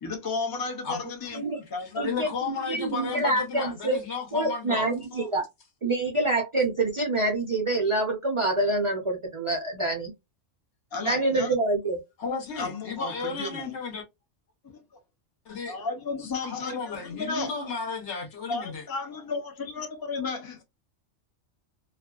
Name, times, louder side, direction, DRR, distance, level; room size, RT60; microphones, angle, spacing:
voice 1, 0.0-2.1 5.1-5.3 10.9-11.5 12.6-13.7 14.6-14.8 15.6-17.7 18.5-20.6, left 3 dB, 25° left, 0.5 m, -34 dB
voice 2, 0.8-1.4 1.8-4.9 12.2-14.0 15.5-15.8 16.2-18.8, left 5 dB, 65° left, 1.1 m, -34 dB
voice 3, 2.0-4.0 4.3-5.5 5.8-10.1 11.0-12.0, right 2 dB, 45° right, 0.4 m, -26 dB
2.5 x 2.3 x 2.3 m
omnidirectional pair, 1.3 m